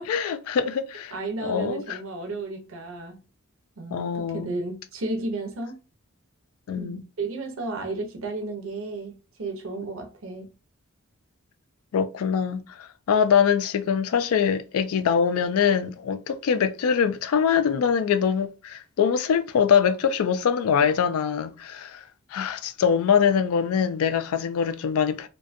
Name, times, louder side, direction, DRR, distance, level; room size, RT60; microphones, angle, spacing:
voice 1, 0.1-1.1 1.4-2.0 3.9-4.5 6.7-7.0 11.9-22.0 22.3-25.3, left 7 dB, 80° left, 0.3 m, -23 dB
voice 2, 1.1-3.2 3.8-5.8 6.7-9.1 9.4-10.5, right 2 dB, 65° right, 0.6 m, -33 dB
2.5 x 2.2 x 2.4 m
head